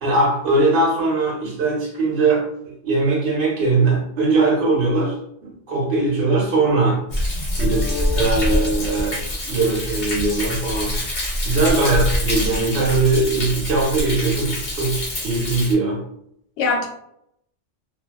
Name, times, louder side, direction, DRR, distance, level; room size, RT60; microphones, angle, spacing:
voice 1, 0.0-5.2 5.4-7.0 7.6-7.8 8.1-9.2 9.5-11.0 11.4-16.0, right 3 dB, 50° right, -2 dB, 0.9 m, -20 dB
Thunder, 7.1-15.7, left 1 dB, 50° left, 0.7 m, -25 dB
voice 2, 7.6-8.6 16.6-16.9, left 4 dB, 85° left, 3 dB, 0.9 m, -26 dB
2.7 x 2.0 x 2.3 m, 0.72 s
omnidirectional pair, 1.2 m